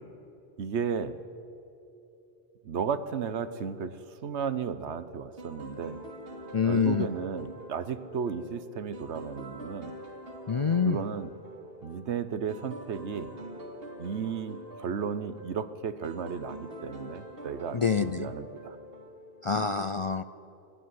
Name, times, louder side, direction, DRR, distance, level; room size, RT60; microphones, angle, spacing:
voice 1, 0.6-1.2 2.6-6.0 6.6-9.9 10.9-11.3 11.8-13.3 14.0-18.8, right 6 dB, 85° right, 13 dB, 1.3 m, -34 dB
sound 1, 5.4-19.6, right 1 dB, 60° right, 2.5 m, -45 dB
voice 2, 6.5-7.1 10.5-11.0 17.7-18.3 19.4-20.2, left 6 dB, 45° left, 12 dB, 0.4 m, -26 dB
27.0 x 12.5 x 9.6 m, 3.0 s
omnidirectional pair, 1.1 m